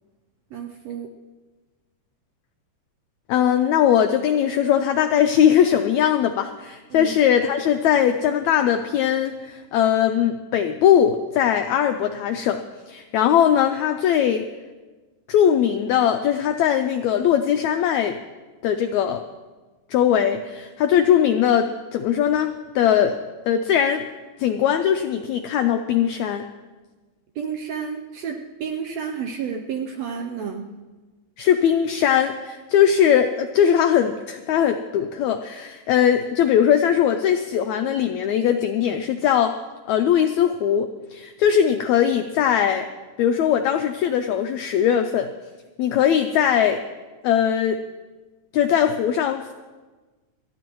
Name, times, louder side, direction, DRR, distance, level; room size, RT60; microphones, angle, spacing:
voice 1, 0.5-1.1 6.9-7.1 27.3-30.7, right 7 dB, 75° right, 3 dB, 1.6 m, -31 dB
voice 2, 3.3-12.6 12.9-14.4 15.3-18.2 18.6-19.2 19.9-23.2 23.5-24.1 24.4-26.5 31.4-39.5 39.9-42.9 43.2-45.3 45.8-46.8 47.2-47.8 48.5-49.5, left 9 dB, 85° left, 7 dB, 1.6 m, -20 dB
29.5 x 10.0 x 3.1 m, 1.3 s
omnidirectional pair, 3.8 m